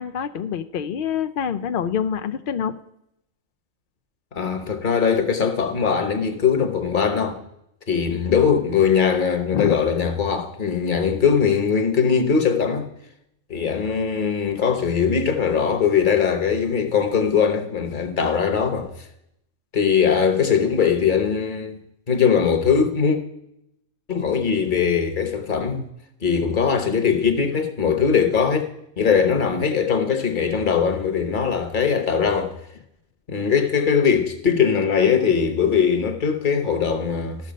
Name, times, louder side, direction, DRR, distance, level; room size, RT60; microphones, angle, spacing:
voice 1, 0.0-2.8 9.5-9.7, left 8 dB, 75° left, 0.4 m, -26 dB
voice 2, 4.3-7.4 7.9-12.9 13.5-18.9 19.7-21.8 22.1-23.2 24.1-25.9 26.2-28.7 29.0-32.5 33.3-37.4, left 6 dB, 40° left, 1.1 m, -20 dB
13.5 x 6.4 x 5.1 m
omnidirectional pair, 1.5 m